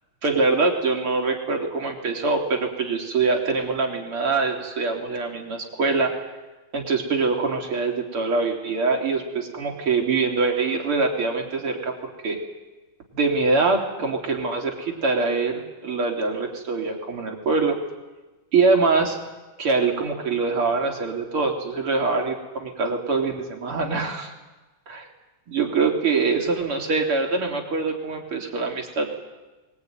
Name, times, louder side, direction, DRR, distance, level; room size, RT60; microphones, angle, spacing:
voice 1, 0.2-6.3 6.7-11.9 12.2-12.4 13.1-17.8 18.5-19.2 19.6-24.3 24.9-25.1 25.5-29.1, right 4 dB, 85° right, 1 dB, 4.1 m, -24 dB
22.5 x 20.0 x 9.4 m, 1.2 s
omnidirectional pair, 2.3 m